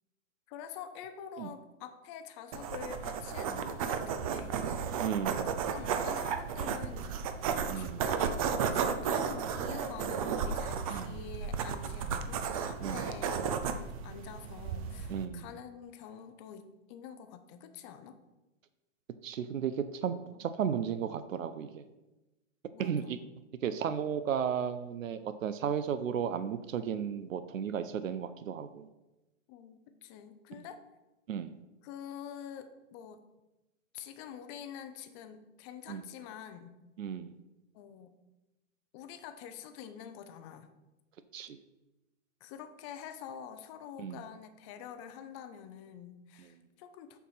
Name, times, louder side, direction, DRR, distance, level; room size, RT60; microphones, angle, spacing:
voice 1, 0.5-4.6 5.4-7.2 7.5-13.4 14.0-18.2 20.3-20.4 22.7-23.3 29.5-30.8 31.8-33.2 33.9-36.7 37.7-38.1 38.9-40.7 42.4-47.2, left 8 dB, 25° left, 9 dB, 0.5 m, -47 dB
sound 1, 2.5-15.3, right 6 dB, 30° right, 0.5 m, -34 dB
voice 2, 5.0-5.6 7.7-8.0 10.9-11.2 12.8-13.0 15.1-15.5 19.2-20.1 20.4-21.8 22.8-23.2 23.6-28.9 31.3-31.6 35.9-36.0 37.0-37.4 41.3-41.6 44.0-44.2, right 8 dB, 85° right, 11 dB, 0.7 m, -34 dB
7.0 x 4.8 x 5.6 m, 1.0 s
hypercardioid pair, 140°, 38 cm